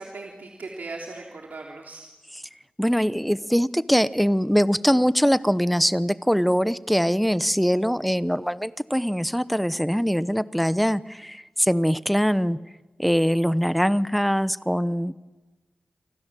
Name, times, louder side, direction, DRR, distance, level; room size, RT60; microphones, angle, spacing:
voice 1, 0.0-2.0, right 3 dB, 75° right, 0 dB, 3.4 m, -38 dB
voice 2, 2.8-12.6 13.0-15.1, equal, ahead, 16 dB, 0.8 m, -22 dB
29.5 x 25.0 x 7.6 m, 1.2 s
wide cardioid pair, 70°, 3 cm